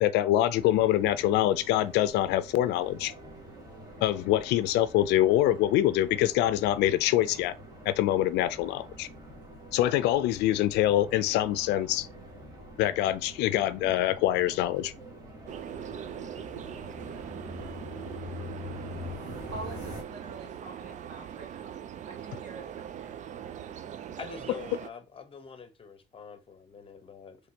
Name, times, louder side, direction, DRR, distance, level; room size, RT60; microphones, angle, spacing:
voice 1, 0.0-3.1 4.0-7.5 7.8-9.1 9.7-12.1 12.8-14.9, left 13 dB, 85° left, 0.5 m, -25 dB
sound 1, 0.6-20.0, left 1 dB, 20° right, 1.8 m, -45 dB
sound 2, 15.5-24.9, right 9 dB, 45° right, 0.5 m, -41 dB
voice 2, 19.5-21.7 22.0-23.2, right 2 dB, 80° right, 1.8 m, -45 dB
voice 3, 24.2-27.4, left 6 dB, 35° left, 0.9 m, -45 dB
5.1 x 3.3 x 2.8 m
cardioid pair, 110°, 17 cm